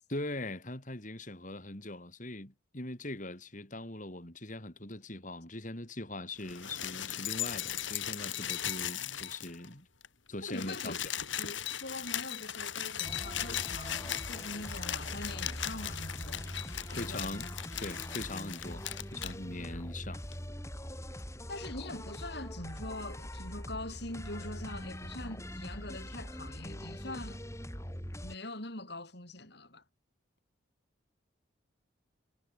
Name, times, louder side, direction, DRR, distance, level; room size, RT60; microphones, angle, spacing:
voice 1, 0.1-9.9 10.3-10.9 16.9-17.5 17.8-20.2, left 2 dB, 40° left, 3.3 m, -41 dB
sound 1, 6.4-9.7 10.0-10.1 10.3-19.3 20.3-20.4, left 10 dB, 70° left, 4.1 m, -38 dB
voice 2, 10.4-11.0 11.4-16.5 16.9-17.3 21.5-27.4 28.2-29.8, left 2 dB, 55° left, 6.8 m, -43 dB
sound 2, 13.0-28.3, equal, 15° left, 7.8 m, -43 dB
head